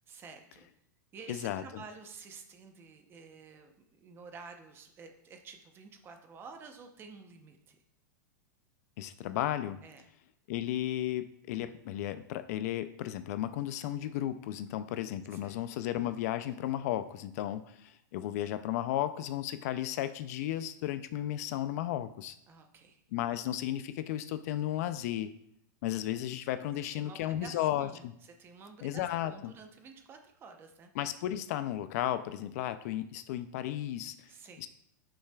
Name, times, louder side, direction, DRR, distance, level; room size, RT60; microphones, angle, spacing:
voice 1, 0.1-0.7 1.1-7.8 9.8-10.0 15.3-15.7 22.5-23.0 26.9-30.9 34.3-34.7, right 4 dB, 20° right, 5 dB, 0.7 m, -51 dB
voice 2, 1.3-1.8 9.0-9.8 10.5-22.4 23.1-25.3 25.8-28.1 28.8-29.5 31.0-34.3 34.6-34.7, left 12 dB, 50° left, 12 dB, 0.4 m, -34 dB
10.0 x 5.6 x 2.3 m, 0.73 s
supercardioid pair, 150°, 10 cm